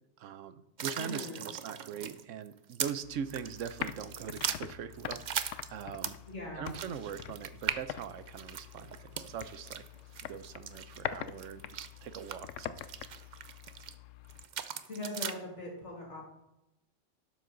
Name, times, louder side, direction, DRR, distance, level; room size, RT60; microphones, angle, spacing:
voice 1, 0.2-6.2 6.5-9.8 10.3-12.8, right 8 dB, 80° right, 13 dB, 1.0 m, -42 dB
sound 1, 0.8-3.0 3.3-6.3 6.7-13.9 14.3-15.4, right 8 dB, 50° right, 0.6 m, -39 dB
voice 2, 0.9-1.4 6.3-6.8 14.8-16.2, left 1 dB, 70° left, -2 dB, 3.0 m, -41 dB
sound 2, 3.0-14.4, left 11 dB, 90° left, 0.9 m, -44 dB
12.0 x 7.3 x 3.9 m, 0.93 s
omnidirectional pair, 1.3 m